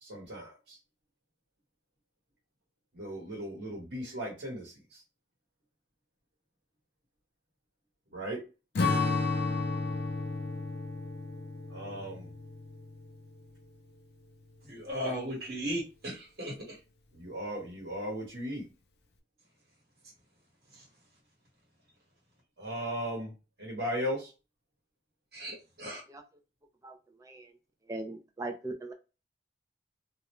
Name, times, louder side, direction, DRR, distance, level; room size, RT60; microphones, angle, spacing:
voice 1, 0.0-0.8 2.9-5.0 8.1-8.4 11.7-12.3 17.1-18.6 22.6-23.3 23.6-24.3, equal, 80° right, -3 dB, 1.0 m, -37 dB
Strum, 8.8-13.4, left 3 dB, 65° left, 0.4 m, -32 dB
voice 2, 14.6-16.8 25.3-26.0, equal, 60° right, -3 dB, 1.2 m, -36 dB
voice 3, 27.2-27.5 27.9-28.9, right 2 dB, 20° right, 4 dB, 0.4 m, -39 dB
2.5 x 2.1 x 2.9 m, 0.30 s
head